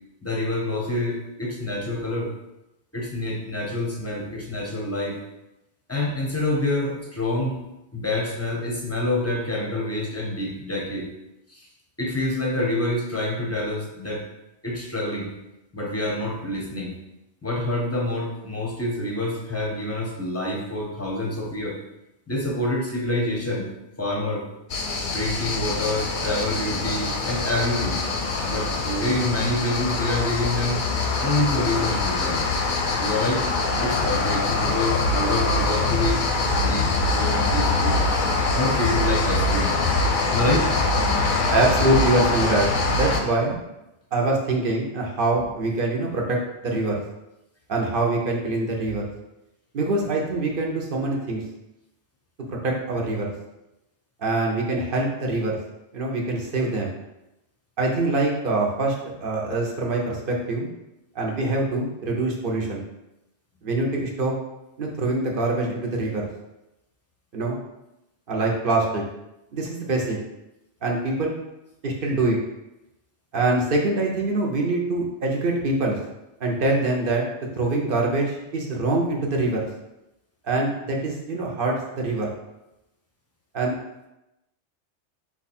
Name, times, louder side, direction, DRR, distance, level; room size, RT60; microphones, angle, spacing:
voice 1, 0.2-2.3 2.9-5.2 5.9-7.6 7.9-11.1 11.5-11.7 12.0-14.2 14.6-15.3 15.7-16.9 17.4-21.8 22.3-23.7 24.0-24.5 25.0-28.0 28.4-30.8 31.2-32.5 33.0-33.5 33.8-36.2 36.6-38.0 38.5-39.8 40.3-41.2 45.3-45.4, left 1 dB, 15° left, -2 dB, 0.5 m, -27 dB
sound 1, 24.7-43.2, left 3 dB, 55° left, 0.6 m, -24 dB
voice 2, 41.5-42.7 43.0-43.5 44.1-46.4 46.6-47.0 47.7-49.0 49.7-51.4 52.5-53.3 54.2-55.6 55.9-56.9 57.8-60.7 61.1-62.8 63.6-64.3 64.8-66.3 67.3-67.6 68.3-69.0 69.5-70.2 70.8-71.4 71.8-72.4 73.3-76.0 76.4-77.2 77.5-79.7 80.4-82.3 83.5-83.7, right 2 dB, 55° right, -1 dB, 0.9 m, -24 dB
4.5 x 2.4 x 4.1 m, 0.93 s
omnidirectional pair, 1.2 m